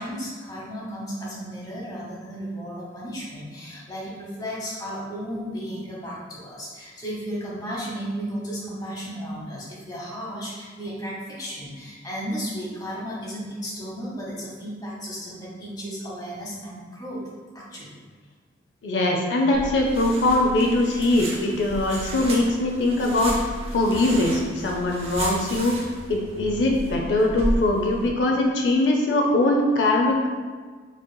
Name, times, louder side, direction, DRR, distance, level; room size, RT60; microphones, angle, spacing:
voice 1, 0.0-17.2 17.5-18.0, equal, 20° left, -6 dB, 1.1 m, -34 dB
voice 2, 18.8-25.7 26.1-30.2, left 2 dB, 75° left, 0 dB, 0.5 m, -22 dB
sound 1, 19.5-28.1, right 1 dB, 30° right, 0.6 m, -33 dB
6.9 x 3.0 x 2.2 m, 1.5 s
head